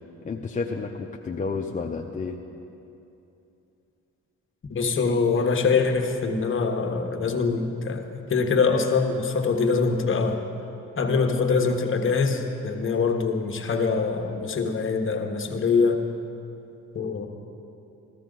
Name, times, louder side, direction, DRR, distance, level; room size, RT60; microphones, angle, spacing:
voice 1, 0.2-2.3, left 4 dB, 25° left, 1 dB, 0.6 m, -30 dB
voice 2, 4.7-10.4 11.0-16.0 16.9-17.3, left 4 dB, 40° left, 4 dB, 1.3 m, -24 dB
14.5 x 14.0 x 3.9 m, 2.8 s
cardioid pair, 90°, 30 cm